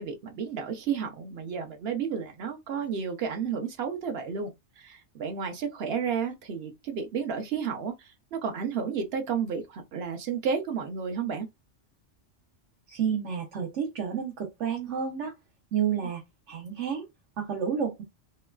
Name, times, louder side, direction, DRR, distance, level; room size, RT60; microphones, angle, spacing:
voice 1, 0.0-4.5 4.8-7.9 8.3-11.5, right 6 dB, 65° right, 0.8 m, -32 dB
voice 2, 12.9-15.3 15.7-16.2 16.5-17.1 17.4-18.0, right 7 dB, 90° right, 1.1 m, -30 dB
2.9 x 2.3 x 2.2 m
omnidirectional pair, 1.2 m